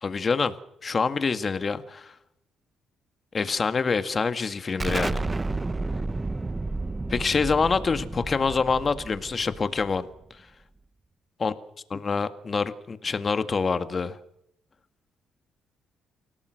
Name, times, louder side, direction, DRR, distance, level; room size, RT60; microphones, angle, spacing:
voice 1, 0.0-0.5 0.8-2.1 3.3-5.3 7.1-10.1 11.4-11.5 11.9-14.2, left 5 dB, 35° left, 10 dB, 1.8 m, -26 dB
Explosion, 4.8-10.2, right 2 dB, 20° right, 0.8 m, -31 dB
29.0 x 17.5 x 6.5 m, 0.78 s
cardioid pair, 90°, 0 cm